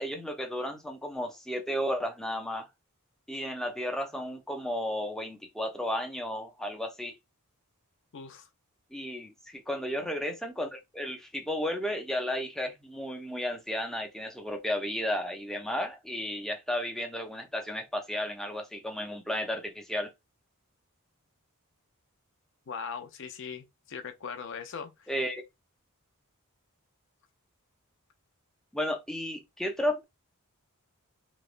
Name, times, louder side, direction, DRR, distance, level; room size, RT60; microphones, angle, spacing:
voice 1, 0.0-2.7 3.3-7.1 8.9-20.1 25.1-25.4 28.7-30.0, equal, ahead, 0.5 m, -33 dB
voice 2, 8.1-8.5 22.7-25.1, left 6 dB, 55° left, 0.5 m, -40 dB
3.0 x 2.1 x 2.4 m
head